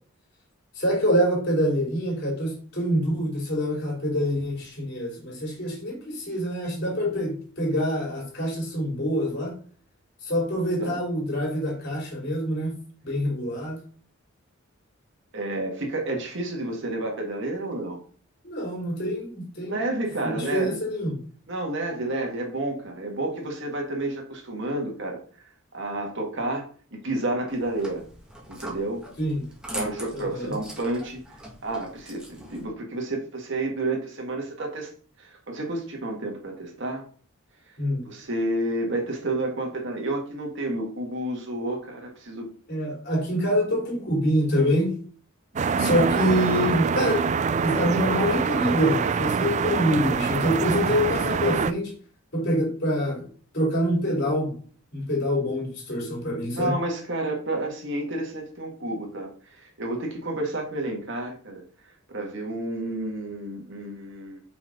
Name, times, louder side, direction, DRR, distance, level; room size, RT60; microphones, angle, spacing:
voice 1, 0.8-9.5 10.2-12.8 13.0-13.8 18.4-19.8 20.2-21.2 29.2-29.4 30.1-30.6 37.8-38.1 42.7-45.0 45.8-51.9 52.3-53.3 53.5-54.6 54.9-56.7, equal, 55° left, -1 dB, 3.6 m, -25 dB
voice 2, 15.3-18.0 19.7-20.8 21.5-25.2 25.7-28.0 28.5-29.0 29.7-31.2 31.6-34.9 35.2-37.0 38.0-42.5 45.5-46.0 56.5-61.6 62.1-64.4, right 2 dB, 60° right, 1 dB, 2.1 m, -30 dB
sound 1, 27.5-32.6, right 1 dB, 5° right, 1.8 m, -41 dB
sound 2, 45.6-51.7, right 6 dB, 35° right, 0.3 m, -25 dB
5.8 x 4.7 x 5.2 m, 0.42 s
head